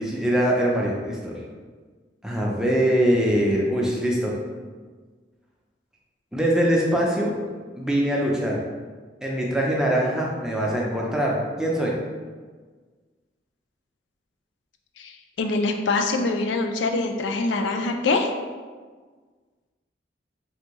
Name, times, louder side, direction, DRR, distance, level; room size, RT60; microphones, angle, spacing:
voice 1, 0.0-1.4 2.2-4.3 6.3-7.3 7.8-8.6 9.2-12.0, equal, 5° right, -3 dB, 0.4 m, -23 dB
voice 2, 15.4-18.3, left 3 dB, 80° left, 4 dB, 0.4 m, -24 dB
3.4 x 2.6 x 2.9 m, 1.5 s
head